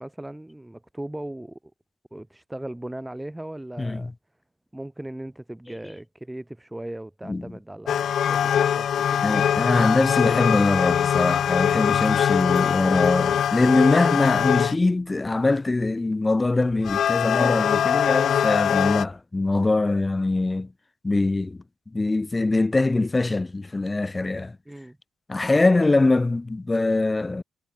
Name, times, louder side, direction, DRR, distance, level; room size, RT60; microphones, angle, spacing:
voice 1, 0.0-1.6 2.1-4.1 4.7-9.3 24.7-25.0, right 1 dB, 10° right, 3.3 m, -38 dB
voice 2, 3.8-4.1 7.3-7.5 9.2-20.7 21.0-21.6 21.9-24.6 25.3-27.4, left 2 dB, 20° left, 1.9 m, -23 dB
sound 1, 7.9-14.8 16.6-19.0, left 9 dB, 60° left, 1.4 m, -22 dB
cardioid pair, 90°, 0 cm